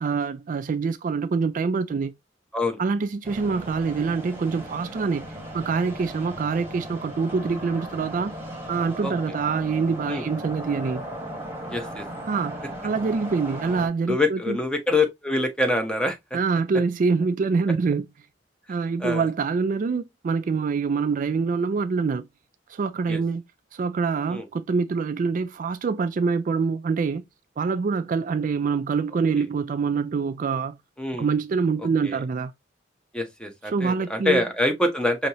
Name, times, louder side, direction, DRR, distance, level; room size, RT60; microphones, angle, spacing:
voice 1, 0.0-2.1 2.8-5.2 5.5-8.3 8.7-11.0 12.3-14.6 16.3-18.0 18.7-22.3 22.7-23.4 23.7-27.2 27.6-30.8 31.2-32.5 33.7-34.4, right 5 dB, 45° right, 0.3 m, -25 dB
sound 1, 3.2-13.9, equal, 15° right, 1.3 m, -37 dB
voice 2, 11.7-12.1 14.1-16.2 19.0-19.3 23.1-23.2 24.3-24.5 31.0-31.3 32.1-32.2 33.1-35.3, left 2 dB, 5° left, 0.8 m, -25 dB
5.2 x 2.8 x 2.8 m
head